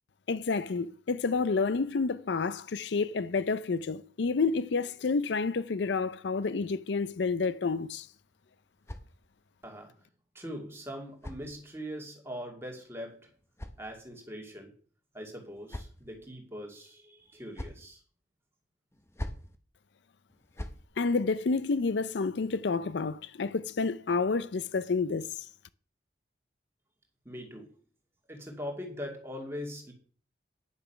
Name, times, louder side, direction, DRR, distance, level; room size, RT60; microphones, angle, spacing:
voice 1, 0.3-8.1 21.0-25.3, left 4 dB, 70° left, 0.5 m, -29 dB
sound 1, 8.0-9.6 10.6-12.1 13.0-14.4 15.2-16.3 17.2-17.9 18.9-19.6 20.3-20.9, left 1 dB, 15° left, 0.9 m, -45 dB
voice 2, 9.6-9.9 10.3-13.3 13.8-14.7 15.1-18.0 27.2-27.8 28.3-29.9, equal, 15° right, 2.5 m, -41 dB
9.9 x 6.9 x 5.8 m
head